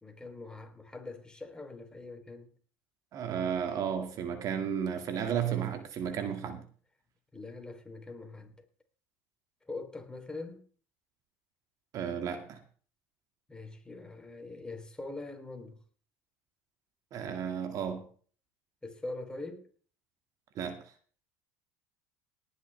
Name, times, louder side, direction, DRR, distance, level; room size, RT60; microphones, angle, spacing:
voice 1, 0.0-2.5 7.3-8.5 9.6-10.6 13.5-15.8 18.8-19.7, left 2 dB, 10° left, 3.3 m, -43 dB
voice 2, 3.1-6.6 11.9-12.6 17.1-18.0 20.6-20.8, right 8 dB, 50° right, 2.0 m, -33 dB
18.5 x 10.0 x 3.4 m
hypercardioid pair, 80°, 8 cm